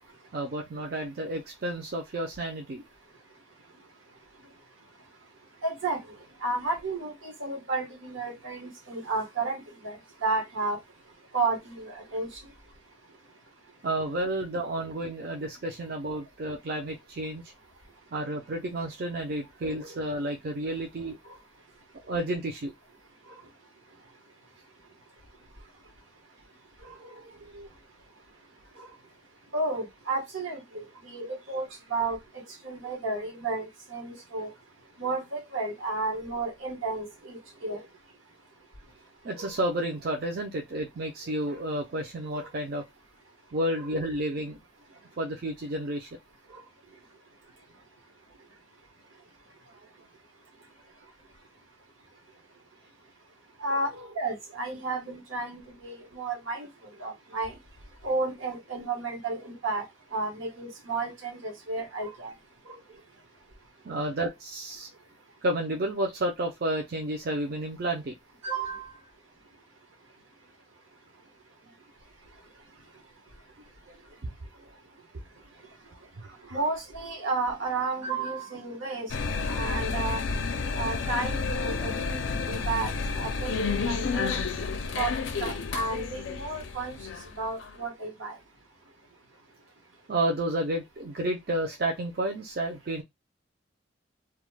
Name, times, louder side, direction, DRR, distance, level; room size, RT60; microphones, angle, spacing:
voice 1, 0.3-2.8 13.8-17.4 18.1-21.4 22.0-22.7 23.2-23.4 26.8-27.7 28.7-29.0 37.7-37.8 39.2-42.8 43.5-44.6 45.2-46.1 46.5-46.7 49.7-49.8 53.7-54.1 62.0-62.1 62.6-62.8 63.8-64.9 65.4-68.1 73.9-74.0 74.2-74.3 76.2-76.4 90.1-93.0, right 1 dB, 50° right, 0.4 m, -31 dB
voice 2, 5.6-6.0 6.4-10.8 11.3-12.3 29.5-34.5 35.0-37.8 53.6-56.7 57.0-57.6 58.0-59.8 60.1-62.3 68.4-68.9 76.5-79.1 79.4-80.2 80.7-82.9 83.2-84.4 85.0-85.1 85.4-87.0 87.4-88.4, right 3 dB, 85° right, 1.1 m, -32 dB
sound 1, 79.1-87.7, left 4 dB, 75° left, 0.4 m, -30 dB
2.3 x 2.2 x 3.1 m
head